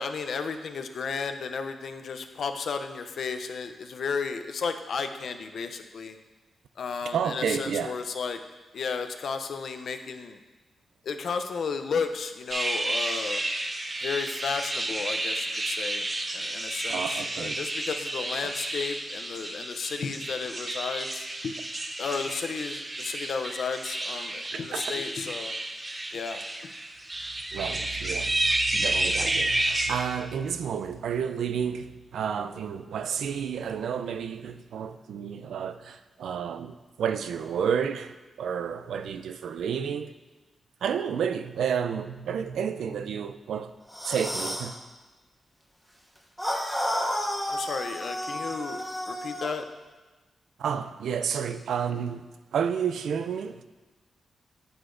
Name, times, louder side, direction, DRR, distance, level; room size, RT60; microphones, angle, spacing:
voice 1, 0.0-6.2 6.8-8.4 8.7-10.4 11.0-13.4 14.0-16.1 16.3-21.5 22.0-25.5 26.1-26.4 29.2-29.3 47.5-49.6, left 5 dB, 70° left, 0.5 m, -33 dB
voice 2, 7.1-7.9 16.9-17.6 18.4-18.5 24.5-24.8 27.5-40.1 40.8-43.7 44.0-44.8 50.6-52.3 52.5-53.6, right 7 dB, 85° right, 0.3 m, -31 dB
sound 1, 12.5-29.9, right 1 dB, 25° right, 0.6 m, -31 dB
sound 2, 43.9-44.7 46.4-49.5, equal, ahead, 1.1 m, -31 dB
7.8 x 7.8 x 2.6 m
cardioid pair, 85°, 0 cm